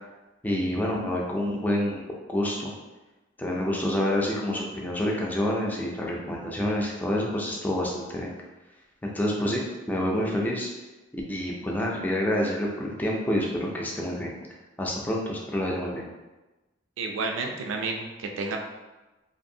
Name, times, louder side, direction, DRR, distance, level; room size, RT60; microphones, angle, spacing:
voice 1, 0.4-2.0 2.3-2.7 3.4-8.3 9.0-10.7 11.1-14.3 14.8-16.1, left 1 dB, 10° left, -2 dB, 0.3 m, -28 dB
voice 2, 17.0-18.6, right 3 dB, 70° right, 2 dB, 0.3 m, -31 dB
2.5 x 2.5 x 2.7 m, 1.1 s
head